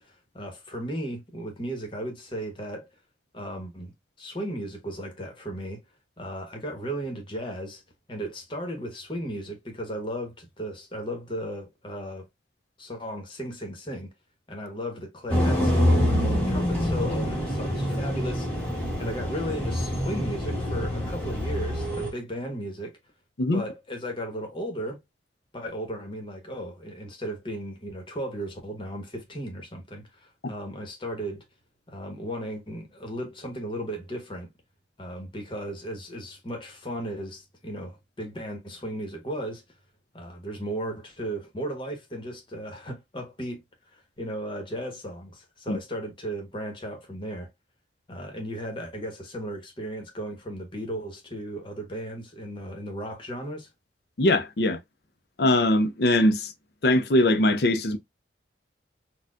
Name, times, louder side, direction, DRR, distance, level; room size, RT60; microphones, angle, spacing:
voice 1, 0.0-2.9 3.3-5.8 6.2-7.8 8.1-12.3 12.8-14.1 14.5-23.0 23.5-25.0 25.5-31.4 31.9-34.5 35.0-39.6 40.1-43.6 43.9-47.5 48.1-53.7, equal, 30° left, 1.1 m, -35 dB
sound 1, 15.3-22.1, equal, 5° left, 1.2 m, -26 dB
voice 2, 54.2-54.8 55.4-56.5 56.8-58.0, left 1 dB, 60° left, 0.6 m, -21 dB
4.3 x 2.3 x 2.4 m
head